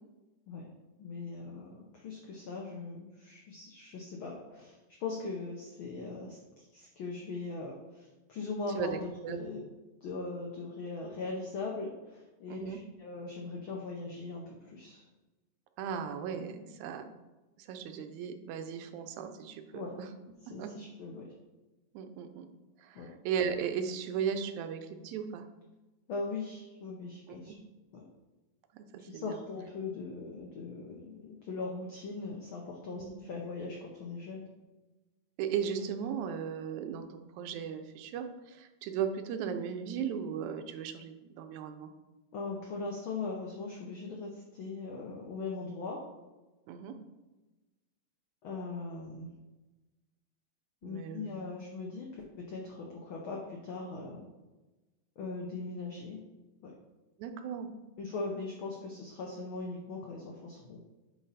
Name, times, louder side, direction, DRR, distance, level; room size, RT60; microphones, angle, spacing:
voice 1, 1.0-9.7 10.0-15.0 19.7-20.0 20.4-21.3 22.9-23.1 26.1-27.5 27.9-28.1 29.0-34.5 42.3-46.1 48.4-49.3 50.8-54.3 55.2-56.2 56.6-56.7 58.0-60.8, left 3 dB, 80° left, -1 dB, 1.1 m, -40 dB
voice 2, 8.8-9.4 12.5-12.8 15.8-17.0 17.6-20.1 20.5-20.7 21.9-22.5 22.8-25.4 27.3-27.6 28.7-29.4 32.9-33.2 35.4-41.9 46.7-46.9 50.8-51.4 57.2-57.7, right 7 dB, 85° right, 7 dB, 2.0 m, -37 dB
8.9 x 3.1 x 4.1 m, 1.1 s
omnidirectional pair, 3.3 m